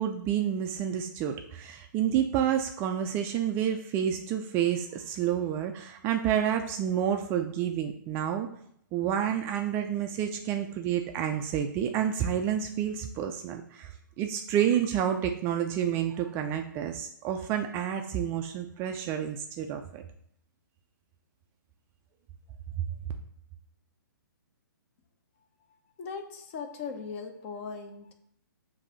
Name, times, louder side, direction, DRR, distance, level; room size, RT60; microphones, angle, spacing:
voice 1, 0.0-8.5 8.9-20.0, right 9 dB, 20° right, 5 dB, 0.3 m, -29 dB
voice 2, 26.0-28.1, left 5 dB, 35° left, 7 dB, 0.8 m, -39 dB
7.0 x 2.7 x 5.6 m, 0.70 s
figure-of-eight pair, 130°, 11 cm